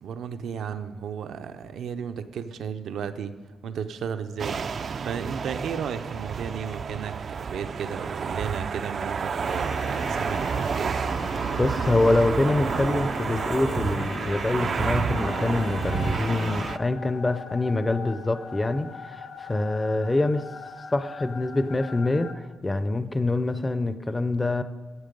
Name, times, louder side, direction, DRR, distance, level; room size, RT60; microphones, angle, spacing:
voice 1, 0.0-3.3 3.6-11.0, right 7 dB, 75° right, 9 dB, 0.7 m, -34 dB
sound 1, 4.4-16.8, right 6 dB, 45° right, 0.3 m, -30 dB
sound 2, 9.4-16.8, left 4 dB, 50° left, 0.8 m, -39 dB
voice 2, 11.6-20.4 20.9-22.3 22.6-24.6, left 2 dB, 15° left, 11 dB, 0.5 m, -25 dB
sound 3, 15.0-22.3, left 5 dB, 80° left, 1.2 m, -41 dB
12.5 x 8.3 x 5.3 m, 1.5 s
wide cardioid pair, 145°, 0 cm